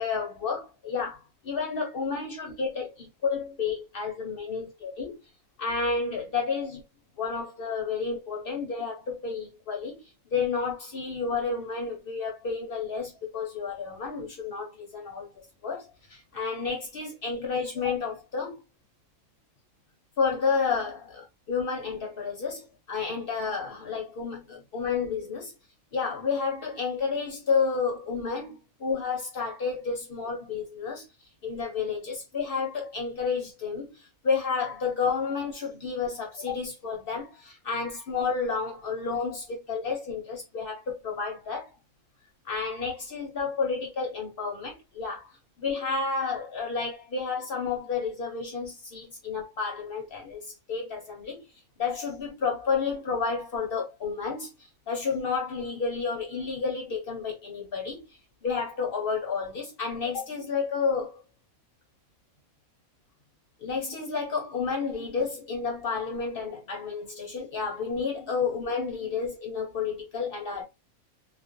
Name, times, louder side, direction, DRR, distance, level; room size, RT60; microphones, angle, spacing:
voice 1, 0.0-5.2 5.6-6.8 7.2-10.0 10.3-18.6 20.2-25.5 25.9-31.0 31.4-41.7 42.4-45.3 45.6-51.4 51.8-54.5 54.9-58.0 58.4-61.2 63.6-70.6, left 5 dB, 55° left, 0.6 m, -31 dB
2.4 x 2.1 x 2.5 m
omnidirectional pair, 1.5 m